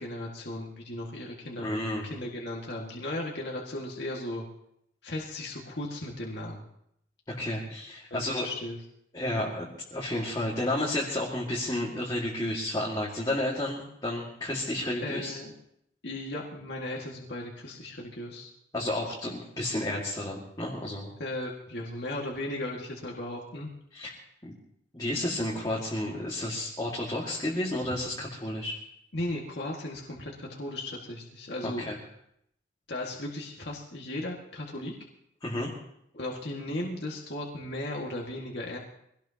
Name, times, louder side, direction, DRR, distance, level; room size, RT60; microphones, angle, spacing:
voice 1, 0.0-4.4 5.0-6.6 8.1-8.8 15.0-15.5 16.0-18.5 21.2-23.7 27.8-28.0 29.1-31.9 32.9-34.9 36.1-38.8, left 1 dB, 60° left, -2 dB, 2.0 m, -36 dB
voice 2, 1.6-2.1 7.3-8.5 9.1-15.4 18.7-21.1 23.9-24.1 24.4-24.5 24.9-28.8 31.6-32.0 35.4-35.7, left 1 dB, 20° left, -5 dB, 2.1 m, -31 dB
23.5 x 18.0 x 2.9 m, 0.74 s
head